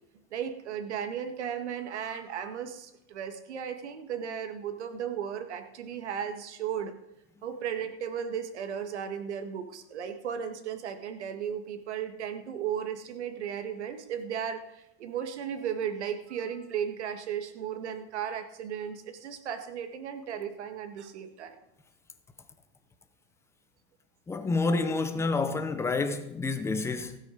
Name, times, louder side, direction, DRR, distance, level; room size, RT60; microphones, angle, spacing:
voice 1, 0.3-6.9 7.4-21.6, right 8 dB, 85° right, 1.9 m, -35 dB
voice 2, 24.3-27.2, left 3 dB, 10° left, 0.7 m, -28 dB
16.0 x 8.8 x 5.1 m
supercardioid pair, 150°, 33 cm